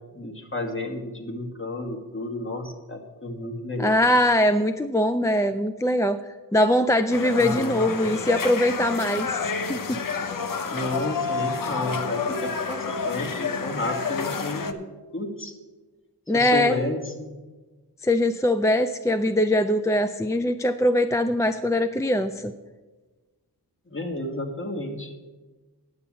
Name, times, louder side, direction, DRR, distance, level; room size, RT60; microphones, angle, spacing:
voice 1, 0.1-4.0 7.3-7.9 10.7-14.8 15.1-15.5 16.3-17.4 23.9-25.1, left 1 dB, 30° left, 4 dB, 1.7 m, -31 dB
voice 2, 3.8-6.2 6.5-10.0 16.3-16.9 18.0-22.5, left 1 dB, 10° left, 9 dB, 0.3 m, -22 dB
sound 1, 7.1-14.7, left 5 dB, 55° left, 0.8 m, -29 dB
9.5 x 6.9 x 7.3 m, 1.2 s
wide cardioid pair, 70°, 39 cm